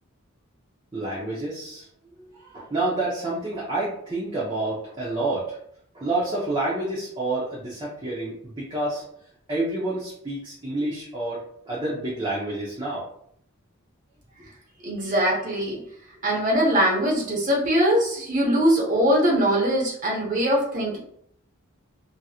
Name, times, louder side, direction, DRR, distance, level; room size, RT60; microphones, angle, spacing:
voice 1, 0.9-1.9 2.2-5.6 5.9-9.1 9.5-13.1, right 2 dB, 20° right, -7 dB, 0.7 m, -29 dB
voice 2, 14.8-15.8 16.2-21.0, equal, 35° right, -4 dB, 1.1 m, -22 dB
3.1 x 2.7 x 2.4 m, 0.68 s
head